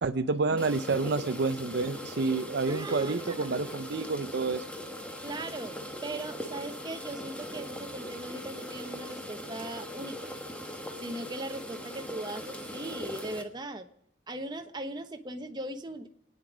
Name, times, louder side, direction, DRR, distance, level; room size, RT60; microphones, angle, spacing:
voice 1, 0.0-4.7, right 3 dB, 55° right, 10 dB, 0.6 m, -29 dB
sound 1, 0.6-13.4, equal, 5° left, 1.3 m, -40 dB
voice 2, 2.7-3.7 5.2-10.3 11.0-13.9 14.3-16.1, right 1 dB, 20° right, 6 dB, 1.1 m, -39 dB
27.5 x 9.7 x 5.0 m, 0.77 s
head